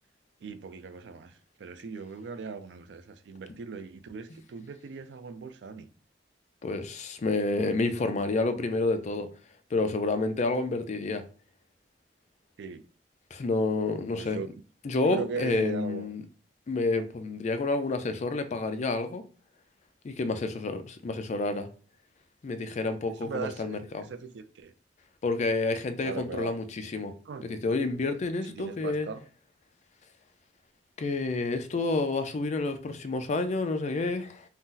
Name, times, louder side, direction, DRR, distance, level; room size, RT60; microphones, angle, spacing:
voice 1, 0.4-1.3 1.6-5.9 12.6-12.8 14.2-14.5 15.0-16.1 23.2-24.7 26.0-26.5 27.3-27.4 28.6-29.2, right 5 dB, 75° right, 0.4 m, -39 dB
voice 2, 6.6-9.3 9.7-11.2 13.3-14.4 14.8-16.2 16.7-19.2 20.0-21.7 22.4-24.1 25.2-27.1 27.4-29.1 31.0-34.4, left 3 dB, 40° left, 0.4 m, -29 dB
2.7 x 2.0 x 3.7 m
head